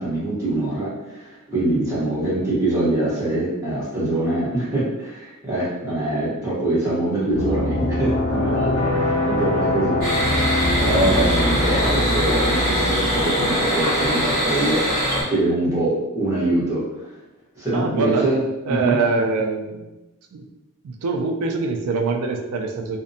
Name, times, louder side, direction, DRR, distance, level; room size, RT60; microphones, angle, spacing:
voice 1, 0.0-10.0 10.8-17.1 17.5-18.4 18.7-19.0, right 2 dB, 15° right, -10 dB, 0.9 m, -24 dB
sound 1, 7.3-13.2, left 1 dB, 70° left, 0.5 m, -23 dB
sound 2, 10.0-15.2, equal, 40° right, 0.8 m, -22 dB
voice 2, 17.7-18.3 18.6-20.0 20.3-20.4 20.8-23.0, right 4 dB, 80° right, 3 dB, 0.4 m, -24 dB
2.5 x 2.1 x 2.6 m, 1.0 s
head